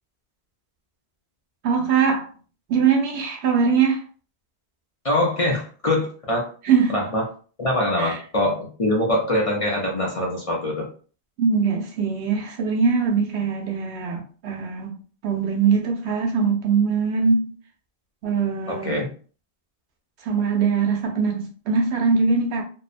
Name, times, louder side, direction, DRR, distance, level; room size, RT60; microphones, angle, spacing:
voice 1, 1.6-2.3 2.7-4.0 6.6-7.0 8.0-8.2 11.4-15.0 15.2-17.5 18.2-19.0 20.2-22.6, right 5 dB, 80° right, 0.9 m, -22 dB
voice 2, 5.0-6.5 6.9-7.2 7.6-10.9 18.7-19.1, left 1 dB, 45° left, 0.5 m, -23 dB
2.6 x 2.1 x 2.4 m
omnidirectional pair, 1.1 m